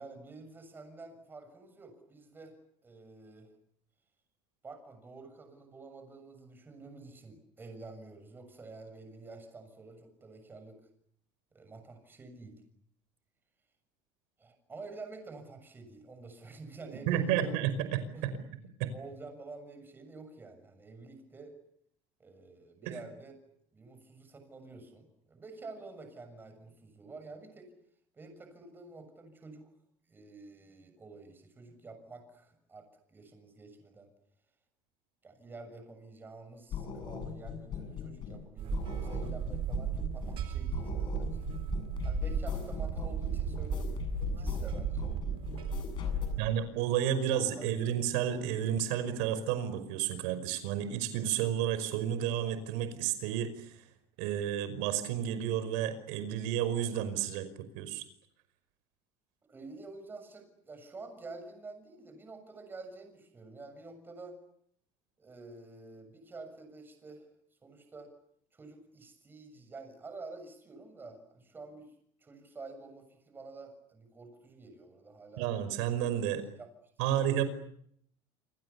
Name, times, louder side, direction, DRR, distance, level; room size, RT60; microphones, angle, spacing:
voice 1, 0.0-2.6 2.8-3.5 4.6-10.8 11.5-12.6 14.4-17.5 18.1-18.3 18.9-21.6 22.2-23.3 23.7-27.7 28.1-29.7 30.1-34.1 35.2-41.5 42.0-45.1 46.2-46.8 47.2-47.3 47.6-48.1 59.5-64.4 65.2-67.3 67.6-68.1 68.5-75.4 76.6-76.7 77.0-77.3, right 3 dB, 15° right, 8 dB, 6.8 m, -49 dB
voice 2, 17.1-18.3 18.8-18.9 22.8-22.9 46.4-53.8 54.2-57.5 57.8-58.0 75.4-76.4 77.0-77.4, right 10 dB, 75° right, 11 dB, 5.3 m, -31 dB
sound 1, 36.7-38.4 38.7-40.4 40.7-46.3, left 8 dB, 35° left, 7.9 m, -38 dB
sound 2, 38.6-46.5, right 10 dB, 45° right, 4.1 m, -36 dB
28.0 x 27.5 x 7.1 m, 0.69 s
cardioid pair, 160°, 13 cm